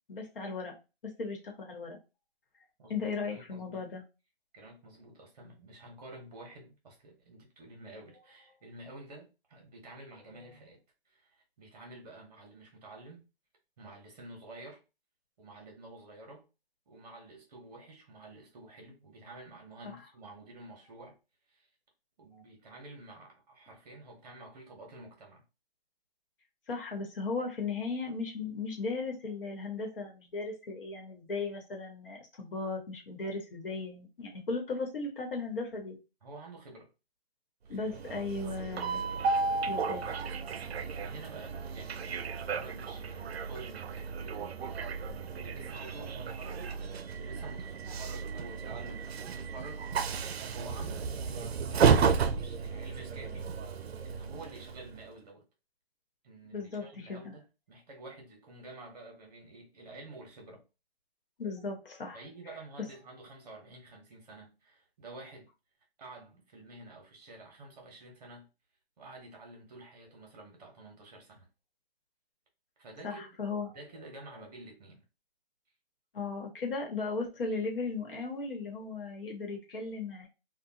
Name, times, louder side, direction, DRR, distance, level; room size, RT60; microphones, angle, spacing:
voice 1, 0.1-0.7 1.2-2.0 2.9-4.0 22.3-22.4 26.7-36.0 37.7-39.0 39.7-40.0 56.5-57.3 61.4-62.2 73.0-73.8 76.1-80.3, left 4 dB, 60° left, 1.2 m, -36 dB
voice 2, 2.8-3.8 4.5-10.8 11.0-13.2 13.8-14.8 15.4-16.4 16.9-21.2 21.5-21.7 22.2-25.4 36.2-36.9 37.7-39.2 39.7-55.4 56.2-60.6 62.1-65.5 66.0-68.5 69.0-71.5 72.8-73.2 73.7-75.0, right 2 dB, 40° right, 1.1 m, -50 dB
Train, 37.8-55.0, right 5 dB, 80° right, 0.5 m, -33 dB
2.7 x 2.3 x 2.7 m
hypercardioid pair, 155°, 31 cm